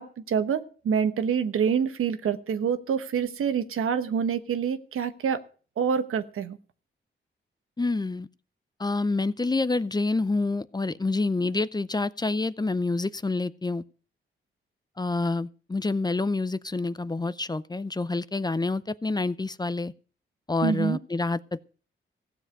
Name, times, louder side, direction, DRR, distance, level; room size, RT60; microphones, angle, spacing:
voice 1, 0.0-5.4 5.8-6.6 20.6-21.0, right 7 dB, 85° right, 1.1 m, -26 dB
voice 2, 7.8-8.3 8.8-13.8 15.0-19.9 20.5-21.6, left 3 dB, 20° left, 0.6 m, -27 dB
15.5 x 7.4 x 6.6 m
cardioid pair, 80°, 21 cm